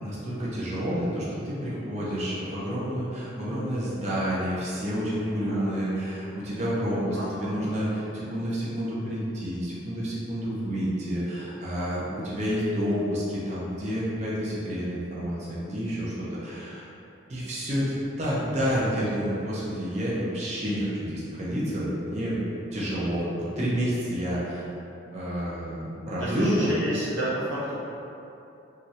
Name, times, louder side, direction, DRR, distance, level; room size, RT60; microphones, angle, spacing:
voice 1, 0.0-16.9 17.3-22.4 22.7-23.3 23.6-24.6 25.1-26.7, equal, 35° right, -8 dB, 0.5 m, -29 dB
voice 2, 7.1-7.8 20.8-20.9 26.2-27.8, right 1 dB, 85° right, -9 dB, 1.0 m, -32 dB
3.0 x 2.4 x 2.7 m, 2.8 s
head